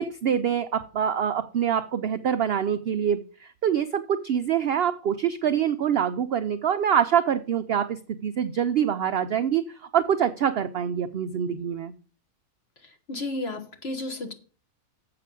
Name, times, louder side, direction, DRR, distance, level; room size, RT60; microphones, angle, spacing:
voice 1, 0.0-9.7 9.9-11.9, right 8 dB, 70° right, 0.6 m, -25 dB
voice 2, 12.8-14.3, left 2 dB, 45° left, 1.5 m, -33 dB
7.7 x 5.8 x 6.8 m
omnidirectional pair, 1.6 m